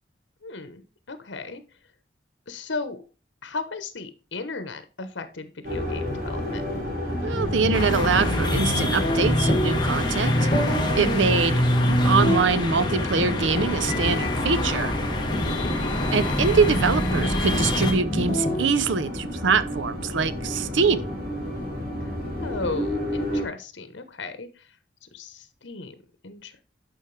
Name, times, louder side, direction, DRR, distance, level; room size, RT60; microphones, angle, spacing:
voice 1, 0.4-1.6 2.5-3.0 3.4-6.6 11.3-11.6 15.4-15.7 22.0-24.8 25.0-25.9 26.2-26.6, left 3 dB, 80° left, 1.1 m, -36 dB
sound 1, 5.6-23.5, left 1 dB, 50° right, 3.0 m, -31 dB
sound 2, 6.1-18.7, equal, 40° left, 2.0 m, -27 dB
voice 2, 7.2-10.5 11.0-11.6 11.9-14.9 16.1-21.1, right 5 dB, 85° right, 0.6 m, -24 dB
sound 3, 7.7-17.9, left 1 dB, 25° left, 1.4 m, -28 dB
11.0 x 5.2 x 3.3 m
head